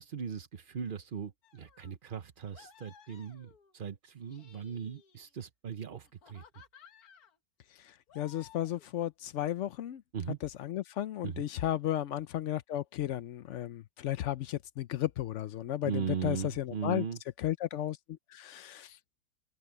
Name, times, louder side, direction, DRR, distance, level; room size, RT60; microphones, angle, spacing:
voice 1, 0.0-6.4 10.1-10.4 11.2-11.4 15.8-17.2, right 7 dB, 50° right, 0.6 m, -38 dB
sound 1, 1.4-2.0 2.5-3.8 4.2-5.4 6.0-7.4 8.1-8.9, left 7 dB, 60° left, 1.8 m, -58 dB
voice 2, 7.8-10.0 10.4-17.1 17.4-19.0, left 12 dB, 75° left, 0.6 m, -34 dB
open air
omnidirectional pair, 1.9 m